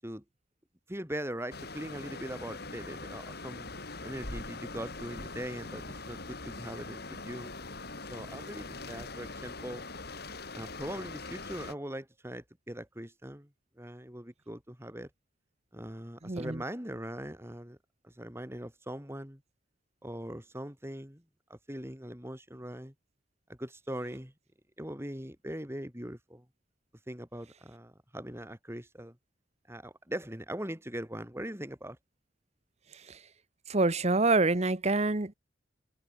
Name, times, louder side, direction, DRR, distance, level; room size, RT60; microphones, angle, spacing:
voice 1, 0.9-3.7 4.0-7.5 8.1-9.8 10.5-13.5 13.8-15.1 15.7-17.8 18.0-19.4 20.0-21.2 21.5-22.9 23.5-24.3 24.8-26.5 27.1-29.2 29.7-32.0, right 1 dB, 15° right, 5.5 m, -41 dB
sound 1, 1.5-11.7, left 3 dB, 55° left, 4.6 m, -42 dB
voice 2, 16.2-16.6 33.1-33.2 33.7-35.3, right 3 dB, 35° right, 1.2 m, -26 dB
head